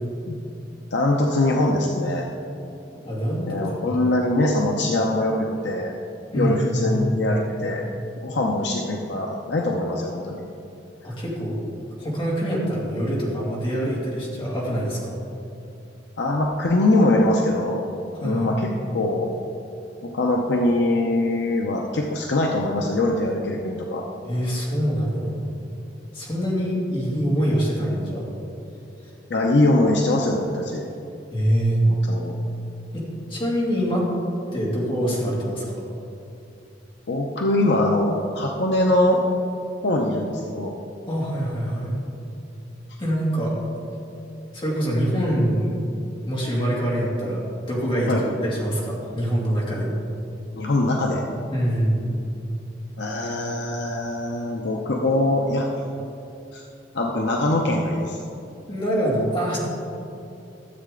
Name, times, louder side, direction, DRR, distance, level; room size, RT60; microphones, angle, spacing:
voice 1, 0.9-2.3 3.5-5.9 6.3-7.8 8.2-10.5 16.2-17.8 18.2-19.3 20.0-24.0 29.3-30.9 31.9-32.3 37.1-39.3 39.8-40.7 48.1-48.2 50.5-51.3 53.0-55.8 56.5-56.6 56.9-58.2, left 1 dB, 65° left, 0 dB, 0.7 m, -22 dB
voice 2, 3.1-3.6 3.9-4.0 6.3-7.4 11.0-11.6 12.0-15.2 18.1-18.5 24.2-25.3 26.1-28.2 31.3-31.8 32.9-34.1 34.5-35.8 41.1-41.9 43.0-43.5 44.5-45.7 46.3-49.9 51.5-52.1 58.7-59.6, equal, 30° left, -5 dB, 2.4 m, -24 dB
13.0 x 7.6 x 3.8 m, 2.7 s
head